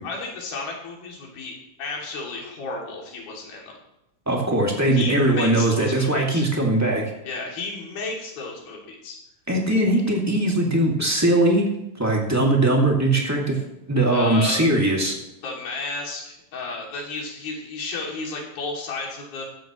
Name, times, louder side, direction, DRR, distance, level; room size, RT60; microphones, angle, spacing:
voice 1, 0.0-3.7 4.9-6.5 7.2-9.2 14.1-14.6 15.4-19.4, left 3 dB, 85° left, -2 dB, 4.6 m, -33 dB
voice 2, 4.2-7.0 9.5-11.7 12.0-13.6 13.9-15.1, right 1 dB, 5° right, -1 dB, 1.3 m, -20 dB
15.0 x 12.5 x 3.1 m, 0.86 s
omnidirectional pair, 4.2 m